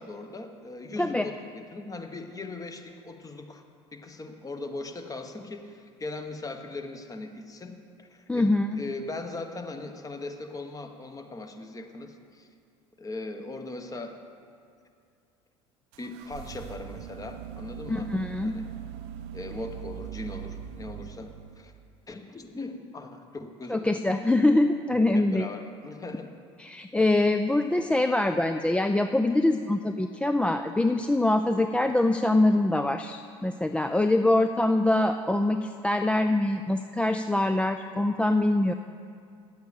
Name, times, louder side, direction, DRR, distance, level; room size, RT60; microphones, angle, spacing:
voice 1, 0.0-3.6 3.9-12.5 13.0-14.2 16.0-18.1 18.4-18.6 19.3-21.7 22.1-24.0 25.1-26.3, left 2 dB, 20° left, 6 dB, 1.2 m, -39 dB
voice 2, 8.3-8.8 17.9-18.6 23.7-25.5 26.6-38.7, left 2 dB, 5° left, 7 dB, 0.4 m, -24 dB
sound 1, 15.9-21.8, right 10 dB, 70° right, 0.6 m, -41 dB
9.9 x 8.0 x 6.7 m, 2.3 s
hypercardioid pair, 75°, 15 cm